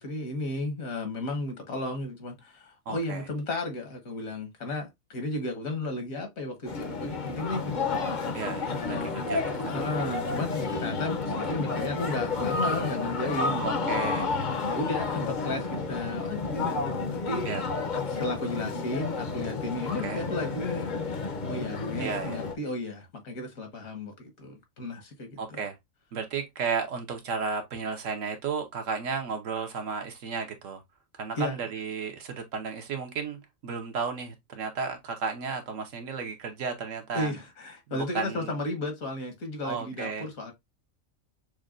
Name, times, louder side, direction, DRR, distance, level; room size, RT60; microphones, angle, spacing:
voice 1, 0.0-7.9 8.5-9.1 9.7-13.7 14.7-16.9 17.1-17.5 17.9-20.9 21.4-25.6 31.3-31.6 37.1-40.5, left 2 dB, 75° left, 1.6 m, -34 dB
voice 2, 2.9-3.2 8.3-9.8 13.6-14.3 17.4-17.6 20.0-20.2 22.0-22.4 25.4-25.8 26.1-30.8 31.1-37.3 37.9-38.5 39.6-40.3, right 5 dB, 70° right, 1.2 m, -33 dB
sound 1, 6.7-22.5, left 4 dB, 45° left, 0.6 m, -31 dB
6.1 x 2.2 x 2.4 m
omnidirectional pair, 1.4 m